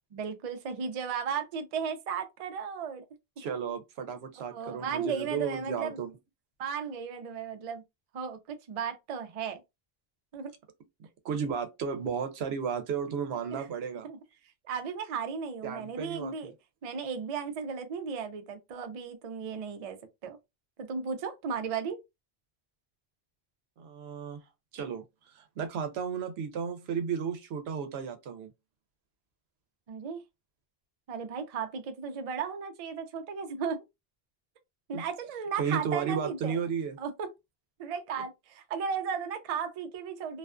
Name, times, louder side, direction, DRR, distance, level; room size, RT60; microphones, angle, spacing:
voice 1, 0.1-3.1 3.4-3.6 4.5-6.0 6.6-7.8 8.1-9.6 10.3-10.5 13.5-13.6 14.0-14.2 14.7-16.5 16.8-20.4 20.8-22.0 29.9-30.2 31.1-33.8 34.9-36.6 37.0-37.3 37.8-40.4, right 6 dB, 55° right, 0.4 m, -35 dB
voice 2, 3.4-6.1 11.2-14.1 15.6-16.5 23.8-24.4 24.7-25.0 25.3-28.5 34.9-35.0 35.6-37.0, right 6 dB, 80° right, 0.8 m, -33 dB
2.4 x 2.2 x 2.3 m
omnidirectional pair, 1.0 m